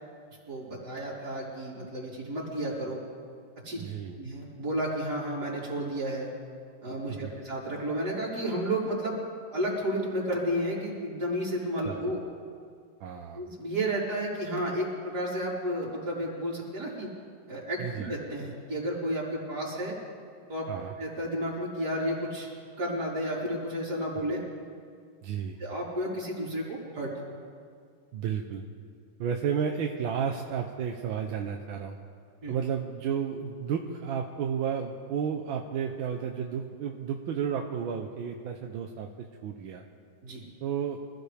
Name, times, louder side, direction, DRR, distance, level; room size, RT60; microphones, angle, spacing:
voice 1, 0.5-3.0 3.6-3.8 4.2-6.3 6.8-9.2 9.5-12.2 13.3-17.1 17.5-20.0 20.5-20.7 21.0-22.5 22.8-24.4 25.6-27.1 32.4-32.5 40.2-40.4, right 1 dB, 55° right, -7 dB, 4.9 m, -32 dB
voice 2, 3.8-4.2 7.1-7.4 11.9-12.0 13.0-13.4 17.8-18.1 20.7-20.9 25.2-25.6 28.1-28.6 29.2-32.0 32.5-39.8 40.6-41.0, right 7 dB, 85° right, 2 dB, 1.7 m, -32 dB
25.5 x 16.0 x 3.5 m, 2.2 s
omnidirectional pair, 2.1 m